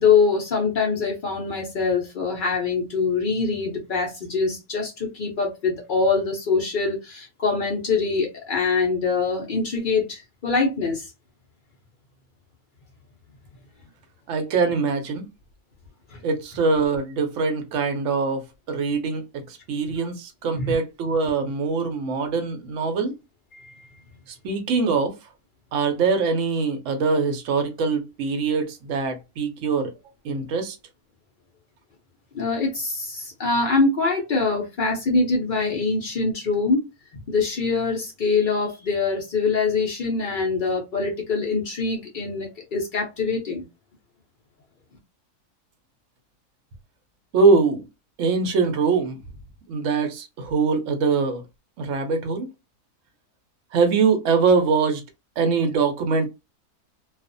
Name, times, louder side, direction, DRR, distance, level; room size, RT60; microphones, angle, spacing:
voice 1, 0.0-11.1 16.1-16.2 20.6-20.8 23.5-24.0 32.3-36.8 37.3-43.6, left 4 dB, 90° left, 0.4 m, -24 dB
voice 2, 14.3-15.3 16.2-19.2 19.5-23.1 24.4-25.1 25.7-29.9 30.2-30.8 47.3-47.9 48.2-49.2 49.7-51.4 51.8-52.5 53.7-55.0 55.4-56.3, right 4 dB, 60° right, 0.8 m, -23 dB
2.5 x 2.3 x 2.5 m
omnidirectional pair, 1.7 m